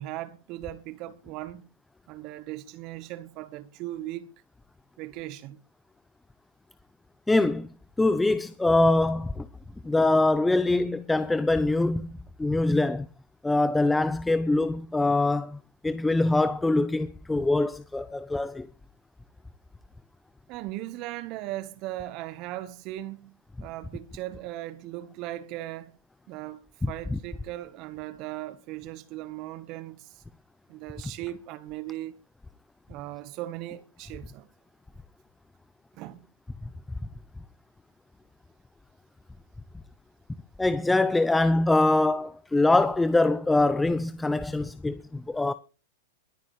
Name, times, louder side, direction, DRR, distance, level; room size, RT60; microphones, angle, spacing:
voice 1, 0.0-1.6 2.1-4.3 5.0-5.6 20.5-23.3 23.6-25.9 26.3-30.2 30.7-32.1 32.9-34.5 35.9-36.2, right 15 dB, 45° right, 1.1 m, -38 dB
voice 2, 7.3-7.7 8.0-9.5 9.8-13.1 13.4-18.7 27.1-27.2 36.6-36.7 40.6-45.5, left 2 dB, 10° left, 0.6 m, -24 dB
22.5 x 9.5 x 3.2 m
hypercardioid pair, 115°, 0 cm